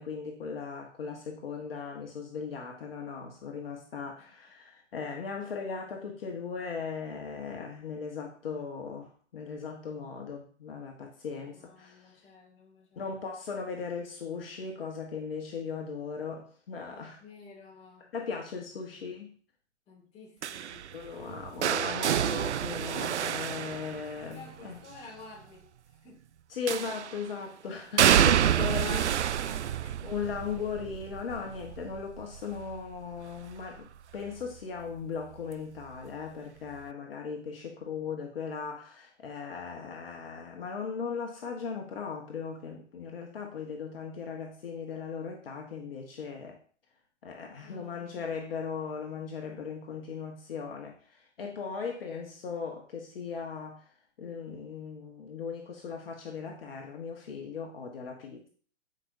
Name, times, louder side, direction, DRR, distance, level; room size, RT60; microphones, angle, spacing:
voice 1, 0.0-12.3 13.0-17.2 18.1-19.3 20.9-24.8 26.5-29.2 30.0-33.9 34.1-46.6 47.2-53.8 54.2-58.5, left 5 dB, 50° left, 1 dB, 1.4 m, -38 dB
voice 2, 11.4-13.3 16.9-18.1 18.9-19.0 19.9-21.4 24.3-26.2 28.6-30.0 47.6-48.4, left 3 dB, 15° left, -2 dB, 2.2 m, -52 dB
sound 1, 20.4-24.5 26.7-27.3 28.0-33.8 34.1-34.5 35.8-35.9, right 9 dB, 65° right, 0.5 m, -28 dB
13.5 x 5.4 x 2.7 m, 0.43 s
figure-of-eight pair, 120°, 37 cm